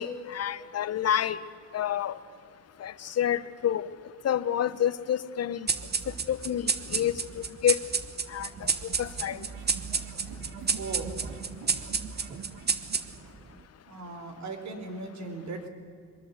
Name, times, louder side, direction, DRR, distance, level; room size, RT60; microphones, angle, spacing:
voice 1, 0.0-1.4 1.7-2.2 2.8-3.9 4.2-5.7 6.3-7.8 8.3-9.4, left 10 dB, 55° left, 15 dB, 1.2 m, -29 dB
sound 1, 5.7-13.4, right 5 dB, 35° right, 1.4 m, -31 dB
sound 2, 8.4-13.4, right 6 dB, 90° right, 2.6 m, -45 dB
voice 2, 10.7-11.4 13.9-15.7, right 3 dB, 65° right, 7 dB, 4.0 m, -38 dB
23.0 x 22.0 x 8.1 m, 2.2 s
cardioid pair, 90°, 30 cm